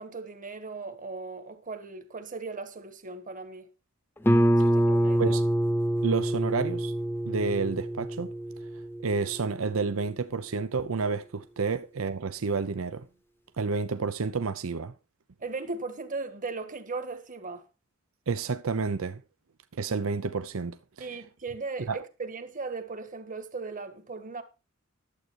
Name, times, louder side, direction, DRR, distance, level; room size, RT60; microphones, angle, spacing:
voice 1, 0.0-3.7 4.6-5.4 15.4-17.6 21.0-24.4, right 3 dB, 40° right, 1.5 m, -37 dB
Guitar, 4.2-9.7, right 1 dB, 10° left, 0.7 m, -26 dB
voice 2, 6.0-6.9 7.3-8.3 9.0-13.1 13.6-14.9 18.3-19.2 19.7-21.2 21.9-22.0, right 4 dB, 90° right, 0.7 m, -30 dB
11.5 x 8.1 x 4.6 m
head